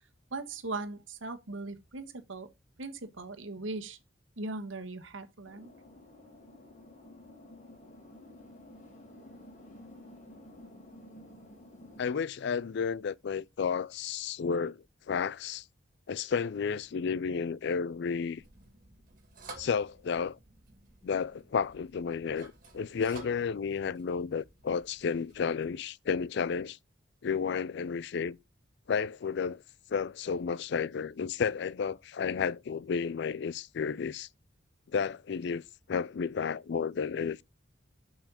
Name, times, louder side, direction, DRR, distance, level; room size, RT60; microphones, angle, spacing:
voice 1, 0.3-2.5 2.8-4.0 4.4-5.7, right 3 dB, 85° right, 1.3 m, -39 dB
sound 1, 5.5-12.1, left 1 dB, 40° left, 2.6 m, -52 dB
voice 2, 12.0-14.8 15.1-15.6 16.1-18.4 19.6-20.4 21.0-26.8 27.2-28.4 28.9-29.6 29.9-34.3 34.9-35.6 35.9-37.4, left 6 dB, 60° left, 0.4 m, -32 dB
sound 2, 18.4-25.7, right 2 dB, 45° right, 2.4 m, -53 dB
7.3 x 5.5 x 5.0 m
head